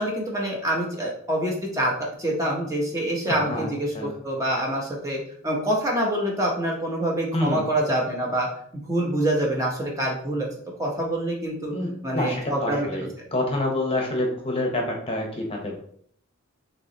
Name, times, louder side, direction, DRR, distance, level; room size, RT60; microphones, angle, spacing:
voice 1, 0.0-8.5 8.9-10.5 10.8-11.7 12.0-13.1, right 1 dB, 15° right, -2 dB, 0.9 m, -26 dB
voice 2, 3.3-3.7 3.9-4.2 7.3-7.6 11.7-15.8, left 1 dB, 25° left, 1 dB, 0.9 m, -27 dB
5.9 x 3.1 x 2.9 m, 0.63 s
head